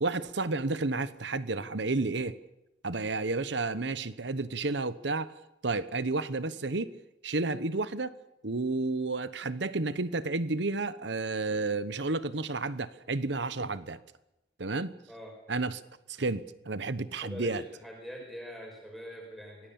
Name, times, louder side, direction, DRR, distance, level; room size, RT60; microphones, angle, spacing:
voice 1, 0.0-2.4 2.8-5.3 5.6-6.9 7.2-8.2 8.4-14.0 14.6-14.9 15.5-15.8 16.1-17.6, right 3 dB, 70° right, 1.0 m, -31 dB
voice 2, 17.2-19.7, equal, ahead, 5.4 m, -43 dB
25.0 x 18.5 x 7.1 m
head